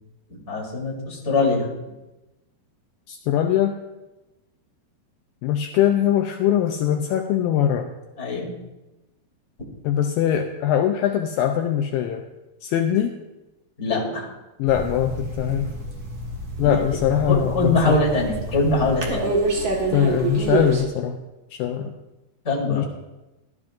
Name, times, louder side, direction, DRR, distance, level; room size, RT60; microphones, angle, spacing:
voice 1, 0.3-1.7 8.2-8.5 13.8-14.3 16.6-16.8 17.3-19.3 22.4-22.8, left 2 dB, 20° left, -2 dB, 2.2 m, -23 dB
voice 2, 3.1-3.8 5.4-7.9 9.8-12.2 12.6-13.1 14.6-15.7 16.6-18.0 19.9-21.2 21.5-22.0 22.7-22.9, left 10 dB, 85° left, 4 dB, 2.0 m, -22 dB
sound 1, 14.7-20.8, right 2 dB, 65° right, 1.2 m, -27 dB
18.0 x 12.0 x 2.5 m, 1.0 s
omnidirectional pair, 4.8 m